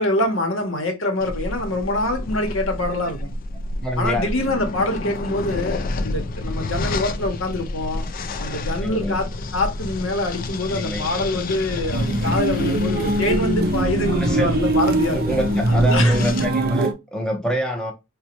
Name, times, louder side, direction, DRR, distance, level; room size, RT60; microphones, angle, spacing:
voice 1, 0.0-3.3 4.0-8.0 8.4-15.2 15.7-16.2, left 2 dB, 75° left, 0.9 m, -25 dB
sound 1, 1.2-16.5, left 2 dB, 45° left, 0.3 m, -29 dB
voice 2, 3.8-4.3 8.7-9.2 10.7-11.1 13.8-14.6 15.1-17.9, equal, 5° left, 0.6 m, -26 dB
sound 2, 11.9-16.9, right 2 dB, 45° right, 0.5 m, -22 dB
4.1 x 2.2 x 2.8 m
head